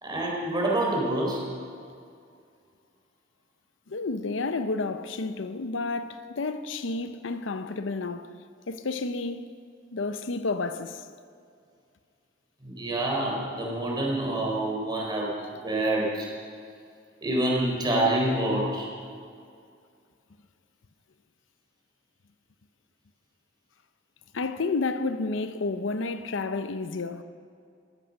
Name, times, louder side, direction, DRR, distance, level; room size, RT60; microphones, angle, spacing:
voice 1, 0.0-1.4 12.6-15.3 15.6-16.3 17.2-18.9, right 1 dB, 25° right, 4.0 m, -27 dB
voice 2, 3.9-8.3 8.7-9.4 9.9-11.0 24.3-27.2, left 3 dB, 80° left, 0.7 m, -30 dB
13.5 x 13.5 x 6.4 m
head